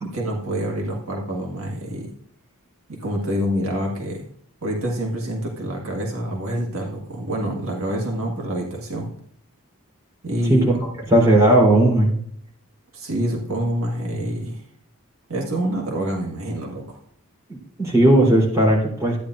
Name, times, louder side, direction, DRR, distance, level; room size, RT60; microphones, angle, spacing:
voice 1, 0.0-2.1 2.9-4.2 4.6-9.1 10.2-10.7 12.9-14.6 15.3-17.0, right 1 dB, 65° right, -1 dB, 1.8 m, -26 dB
voice 2, 11.1-12.1 17.5-19.2, right 1 dB, 15° right, -3 dB, 3.5 m, -16 dB
13.5 x 9.4 x 2.5 m, 0.66 s
head